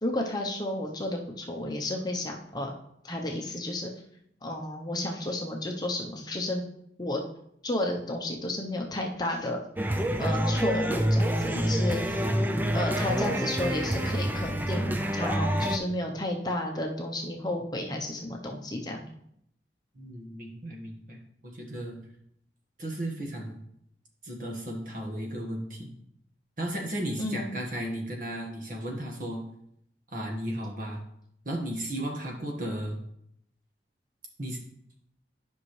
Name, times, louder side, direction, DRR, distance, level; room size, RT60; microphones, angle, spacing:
voice 1, 0.0-2.7 3.0-3.9 4.4-6.6 7.0-7.2 7.6-9.6 10.2-12.2 12.7-19.1 27.2-27.5, left 1 dB, 25° left, 1 dB, 0.8 m, -32 dB
sound 1, 9.8-15.8, right 1 dB, 10° right, 0.4 m, -27 dB
voice 2, 19.9-22.0 22.8-23.6 24.2-25.9 26.6-29.4 30.1-31.0 31.4-33.0 34.4-34.6, right 1 dB, 50° right, 1 dB, 1.5 m, -35 dB
10.5 x 5.4 x 3.2 m, 0.72 s
head